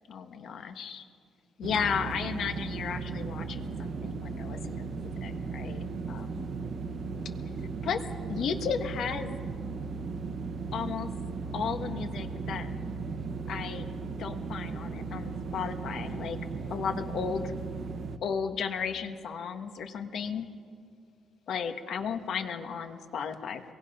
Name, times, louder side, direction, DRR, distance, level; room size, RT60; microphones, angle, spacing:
voice 1, 0.1-1.0 1.6-6.5 7.8-8.0 8.3-9.4 10.7-11.1 11.5-12.7 13.5-13.9 14.2-16.4 16.7-17.5 18.2-20.5 21.5-23.6, left 6 dB, 60° left, 7 dB, 1.7 m, -34 dB
sound 1, 1.6-18.2, right 4 dB, 45° right, 1.0 m, -36 dB
29.0 x 23.0 x 5.7 m, 2.4 s
cardioid pair, 150°, 0 cm